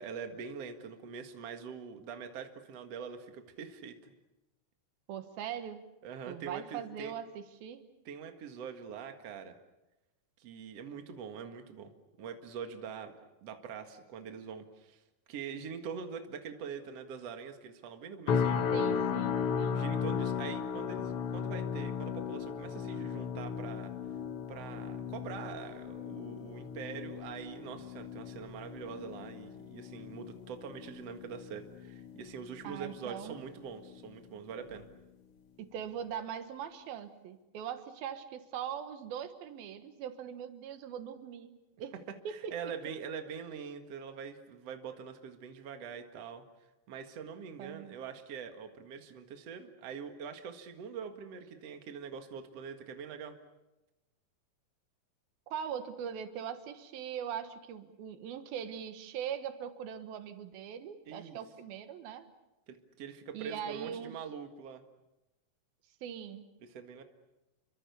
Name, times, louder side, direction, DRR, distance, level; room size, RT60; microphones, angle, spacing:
voice 1, 0.0-4.1 6.0-7.1 8.1-9.6 10.4-11.9 12.2-13.1 13.4-15.0 15.3-18.6 19.7-23.9 24.5-34.9 42.3-46.4 46.9-53.4 61.1-61.4 62.7-64.8 66.6-67.0, right 6 dB, 50° right, 6 dB, 2.6 m, -44 dB
voice 2, 5.1-5.8 6.3-7.8 18.7-19.8 32.6-33.4 35.6-41.5 41.8-41.9 42.2-42.5 47.6-47.9 55.5-62.3 63.3-64.1 66.0-66.4, right 8 dB, 85° right, 9 dB, 3.2 m, -41 dB
sound 1, 18.3-33.5 33.8-34.2 34.7-34.9, left 7 dB, 60° left, 1.5 m, -36 dB
29.5 x 24.0 x 7.0 m, 0.99 s
omnidirectional pair, 4.1 m